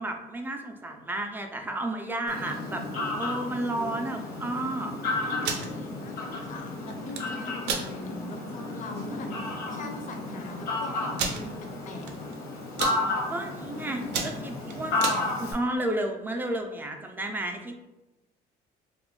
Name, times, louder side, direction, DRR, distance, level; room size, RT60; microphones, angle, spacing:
voice 1, 0.0-2.8 3.2-4.9 13.3-17.8, right 1 dB, 10° right, 3 dB, 0.3 m, -32 dB
Fowl, 2.3-15.5, left 2 dB, 80° left, 0.8 m, -33 dB
sound 1, 5.3-5.7 6.9-7.2 7.6-7.9 8.4-8.5 8.8-9.1 9.8-9.9 10.1-10.2 11.2-11.4 12.0-12.3 12.6-13.0 13.5-13.7 14.0-15.2, right 5 dB, 85° right, 0.5 m, -30 dB
voice 2, 5.6-12.3, left 2 dB, 50° left, 4 dB, 0.5 m, -42 dB
2.4 x 2.1 x 3.6 m, 0.99 s
cardioid pair, 110°, 17 cm